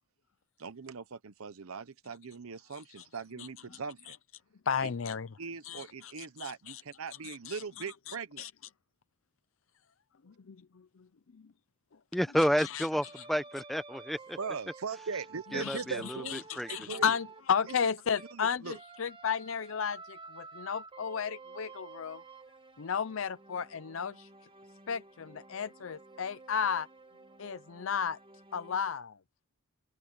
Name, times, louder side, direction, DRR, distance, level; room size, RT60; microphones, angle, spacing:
voice 1, 0.6-4.2 4.8-4.9 5.4-8.5 14.4-17.1 17.6-17.7 18.3-18.7, right 5 dB, 90° right, 0.8 m, -40 dB
voice 2, 4.7-5.3 5.6-6.8 7.2-7.6 8.1-8.5 10.3-10.6 12.6-12.9 15.6-15.8 16.3-22.2 22.8-24.3 24.9-26.9 27.4-28.2 28.5-29.2, left 7 dB, 65° left, 0.6 m, -33 dB
voice 3, 12.1-14.4 15.5-16.7, equal, ahead, 0.9 m, -30 dB
sound 1, 12.9-18.4 18.7-28.9, right 3 dB, 25° right, 1.7 m, -52 dB
open air
head